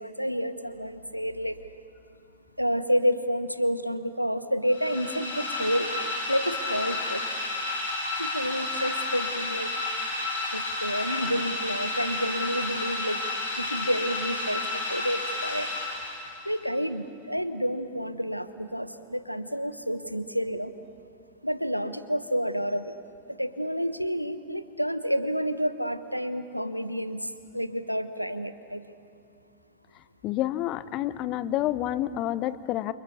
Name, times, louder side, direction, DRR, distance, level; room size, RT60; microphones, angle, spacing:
voice 1, 0.0-1.6 2.6-5.9 6.3-7.2 8.2-9.7 10.5-13.2 13.6-15.7 16.4-20.7 21.4-22.9 23.4-28.8, equal, 90° right, 12 dB, 1.1 m, -29 dB
sound 1, 4.7-16.5, left 2 dB, 80° left, 7.1 m, -31 dB
voice 2, 30.2-32.9, left 13 dB, 40° left, 15 dB, 0.9 m, -28 dB
29.0 x 28.5 x 7.1 m, 2.4 s
figure-of-eight pair, 90°, 0 cm